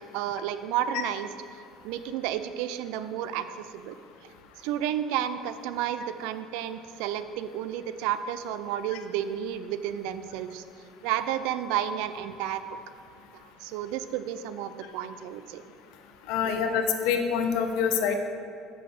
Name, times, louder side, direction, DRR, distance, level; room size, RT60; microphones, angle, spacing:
voice 1, 0.1-1.3 1.8-4.0 4.6-10.6 11.0-12.8 13.3-15.6 16.4-16.6, right 10 dB, 80° right, 11 dB, 0.5 m, -31 dB
voice 2, 16.3-18.1, left 7 dB, 75° left, 6 dB, 0.9 m, -26 dB
7.7 x 6.3 x 6.5 m, 2.4 s
supercardioid pair, 90°, 0 cm